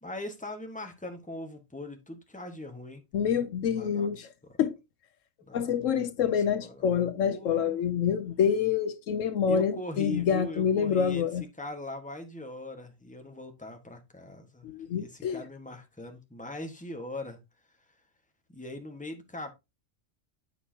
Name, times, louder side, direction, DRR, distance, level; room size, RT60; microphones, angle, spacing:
voice 1, 0.0-3.0 3.7-4.3 5.4-6.9 7.3-7.8 9.5-11.3 11.6-14.7 14.9-17.4 18.5-19.5, left 2 dB, 5° left, 1.3 m, -40 dB
voice 2, 3.1-4.3 4.6-4.8 5.5-11.4 14.6-15.4, left 7 dB, 75° left, 1.0 m, -27 dB
8.3 x 7.2 x 2.8 m
omnidirectional pair, 1.3 m